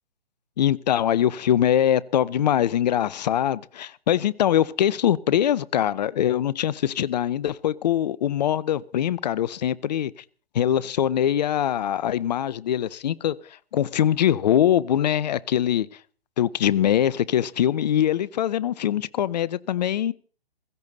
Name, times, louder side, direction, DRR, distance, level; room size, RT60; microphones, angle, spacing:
voice 1, 0.6-10.1 10.5-13.4 13.7-15.9 16.4-20.1, left 10 dB, 45° left, 0.6 m, -23 dB
16.5 x 15.5 x 4.0 m
hypercardioid pair, 135°, 30 cm